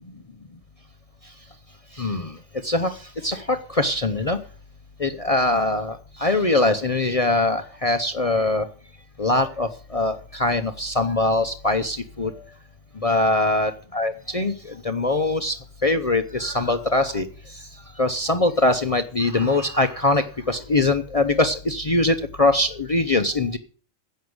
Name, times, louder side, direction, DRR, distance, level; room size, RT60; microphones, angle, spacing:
voice 1, 2.0-2.3 2.6-2.9 3.2-4.4 5.0-8.7 9.2-12.3 13.0-14.5 14.8-15.6 15.8-17.2 18.0-23.6, left 2 dB, 35° left, 9 dB, 0.7 m, -22 dB
11.0 x 7.9 x 7.8 m, 0.41 s
omnidirectional pair, 1.4 m